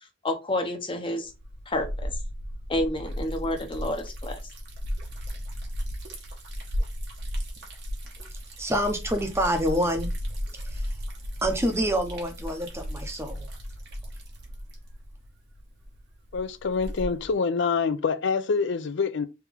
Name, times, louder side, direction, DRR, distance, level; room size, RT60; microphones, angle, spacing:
voice 1, 0.2-1.3 1.7-2.1 2.7-4.4, left 1 dB, 25° left, 0.7 m, -29 dB
Liquid, 1.2-17.3, equal, 60° right, 1.2 m, -35 dB
voice 2, 8.6-10.1 10.7-10.8 11.4-13.5, equal, 15° right, 0.7 m, -27 dB
voice 3, 16.3-19.3, left 5 dB, 65° left, 0.5 m, -26 dB
3.4 x 2.9 x 3.5 m
head